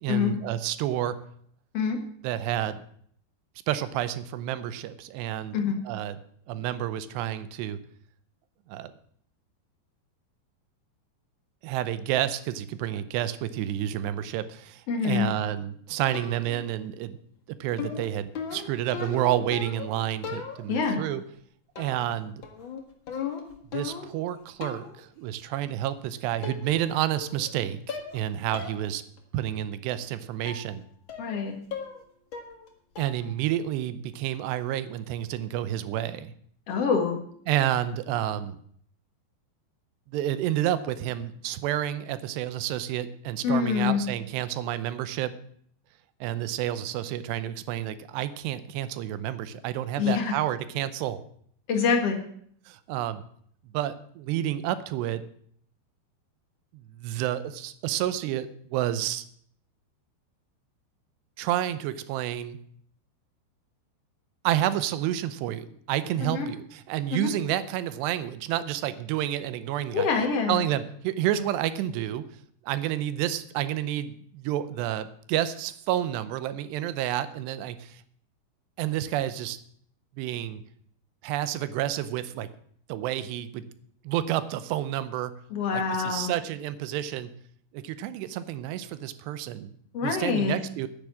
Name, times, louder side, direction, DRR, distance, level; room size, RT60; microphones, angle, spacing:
voice 1, 0.0-1.2 2.2-2.8 3.7-5.6 5.9-6.2 6.5-7.8 8.7-8.9 11.6-17.2 17.5-21.2 21.8-22.4 23.7-29.0 29.3-30.8 33.0-36.3 37.5-38.6 40.1-45.3 46.2-51.2 52.7-53.2 53.7-55.2 56.7-59.2 61.4-62.6 64.4-70.1 70.5-72.2 72.7-78.0 78.8-79.6 80.2-80.6 81.2-82.5 82.9-83.7 84.1-85.3 85.7-87.3 87.7-89.8 90.0-90.9, right 12 dB, 85° right, 14 dB, 2.8 m, -30 dB
voice 2, 14.9-15.3 20.7-21.0 31.2-31.5 36.7-37.2 43.4-44.0 50.0-50.3 51.7-52.2 66.2-66.5 67.1-67.3 69.9-70.6 85.5-86.3 89.9-90.6, left 6 dB, 50° left, 3 dB, 2.1 m, -25 dB
sound 1, 16.1-16.7 17.8-19.9 20.2-20.9 21.8-22.2 22.4-24.2 24.6-25.0 25.9-26.0 26.4-26.9 27.2-27.6 27.9-28.2 28.5-28.8 29.2-29.3 30.5-30.7 31.1-31.4 31.7-32.0 32.3-32.7 33.0-33.3, left 6 dB, 75° left, 1.1 m, -37 dB
10.5 x 10.0 x 7.4 m, 0.63 s
omnidirectional pair, 4.9 m